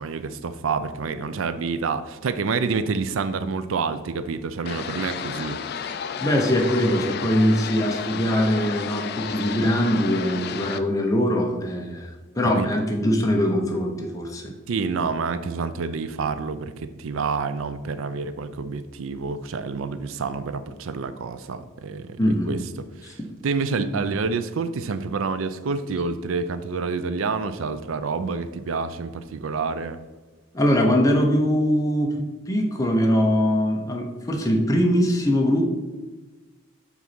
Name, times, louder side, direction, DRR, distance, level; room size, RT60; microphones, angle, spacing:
voice 1, 0.0-5.6 12.4-12.7 14.7-22.2 22.5-22.6 23.0-23.1 23.4-30.0, right 4 dB, 80° right, 12 dB, 0.4 m, -28 dB
sound 1, 4.7-10.8, left 7 dB, 50° left, 0.3 m, -32 dB
voice 2, 6.2-12.1 12.4-14.5 15.0-15.1 22.2-22.6 23.0-23.1 30.5-35.6, equal, 15° left, 1 dB, 0.9 m, -22 dB
5.9 x 4.1 x 5.9 m, 1.2 s
head